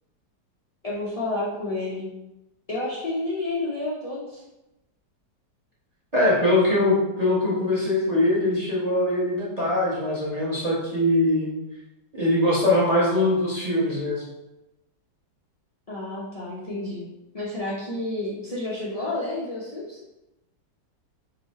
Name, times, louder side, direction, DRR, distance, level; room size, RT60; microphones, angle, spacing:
voice 1, 0.8-2.1 2.7-4.4 15.9-17.0 17.3-20.0, left 2 dB, 65° left, -6 dB, 0.3 m, -30 dB
voice 2, 6.1-11.5 12.1-14.2, left 1 dB, 30° right, -7 dB, 0.8 m, -22 dB
4.2 x 2.9 x 4.1 m, 0.97 s
omnidirectional pair, 2.0 m